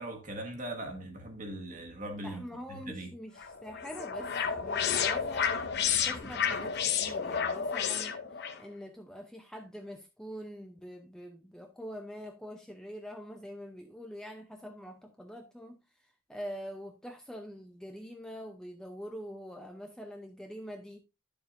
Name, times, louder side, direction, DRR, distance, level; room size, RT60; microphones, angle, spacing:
voice 1, 0.0-3.1, right 1 dB, 35° right, 1.5 m, -40 dB
voice 2, 2.2-5.7 6.0-21.0, equal, 5° left, 0.7 m, -45 dB
sound 1, 3.4-8.6, left 7 dB, 45° left, 0.8 m, -31 dB
10.5 x 7.0 x 2.6 m
head